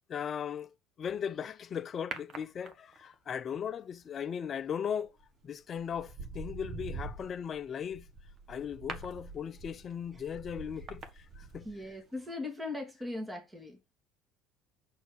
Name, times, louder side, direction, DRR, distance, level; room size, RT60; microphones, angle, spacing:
voice 1, 0.1-0.7 1.0-5.1 5.4-8.0 8.5-11.0 11.4-11.7, left 8 dB, 30° left, 0.7 m, -37 dB
sound 1, 2.1-3.1 5.0-5.3 5.8-12.0 12.2-12.3, right 4 dB, 35° right, 1.2 m, -44 dB
voice 2, 11.6-13.8, left 2 dB, 10° right, 2.0 m, -39 dB
6.3 x 4.4 x 4.8 m
cardioid pair, 150°, 0 cm